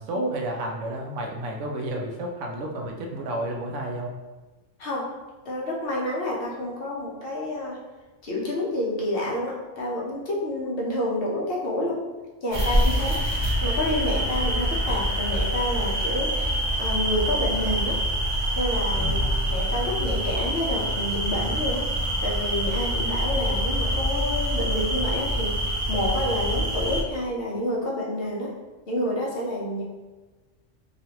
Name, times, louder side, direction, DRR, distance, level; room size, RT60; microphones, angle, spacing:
voice 1, 0.0-4.1 13.1-13.3 19.0-19.4, right 1 dB, 85° right, 1 dB, 0.9 m, -32 dB
voice 2, 5.4-7.8 8.2-12.0 12.4-13.2 13.6-18.0 18.6-19.2 19.5-21.8 22.2-25.5 25.9-28.5 28.9-29.8, left 1 dB, 55° left, -4 dB, 0.9 m, -28 dB
sound 1, 12.5-27.0, equal, 45° right, 0.4 m, -25 dB
3.0 x 2.5 x 2.8 m, 1.2 s
omnidirectional pair, 1.2 m